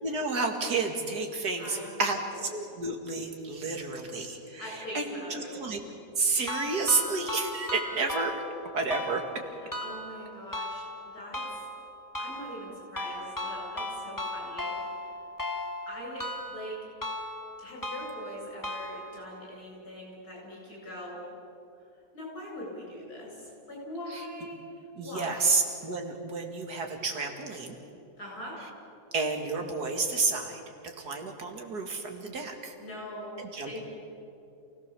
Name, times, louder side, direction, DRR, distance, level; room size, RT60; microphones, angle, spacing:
voice 1, 0.0-5.8 6.2-8.3 8.7-9.2 24.1-24.2 25.0-27.8 29.1-30.6 31.0-32.7 33.4-33.8, right 3 dB, 90° right, 4 dB, 2.7 m, -30 dB
voice 2, 1.6-2.3 4.6-5.6 9.8-11.4 12.2-15.0 15.9-16.8 17.6-21.2 22.1-25.6 28.2-28.6 32.8-33.4 33.6-33.8, left 1 dB, 75° left, -3 dB, 8.8 m, -42 dB
sound 1, 6.5-19.4, left 1 dB, 15° left, 1.4 m, -37 dB
28.0 x 17.5 x 6.9 m, 2.7 s
omnidirectional pair, 1.7 m